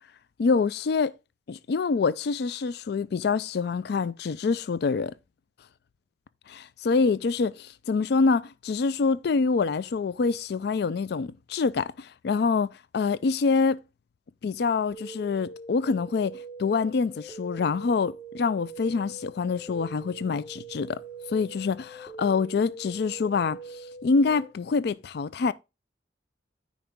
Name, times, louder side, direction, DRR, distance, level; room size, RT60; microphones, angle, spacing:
voice 1, 0.4-1.1 1.5-5.1 6.5-12.7 12.9-13.8 14.4-21.0 21.3-23.6 24.0-25.5, left 4 dB, 65° left, 0.4 m, -26 dB
sound 1, 14.9-24.5, right 3 dB, 15° left, 3.5 m, -43 dB
9.2 x 4.8 x 3.5 m
head